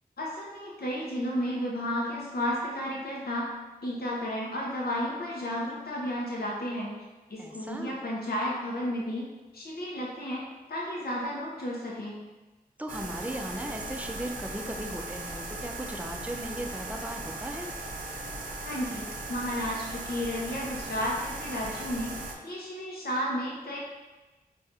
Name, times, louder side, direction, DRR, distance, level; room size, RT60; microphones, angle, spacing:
voice 1, 0.2-3.5 3.8-6.9 7.3-9.3 9.5-10.4 10.7-12.2 18.6-22.2 22.4-23.8, equal, 75° left, -4 dB, 0.7 m, -32 dB
voice 2, 7.4-8.0 12.8-17.7, right 1 dB, 10° right, 3 dB, 0.4 m, -37 dB
sound 1, 12.9-22.3, right 2 dB, 60° right, 0.6 m, -38 dB
4.0 x 2.4 x 2.5 m, 1.2 s
cardioid pair, 45°, 16 cm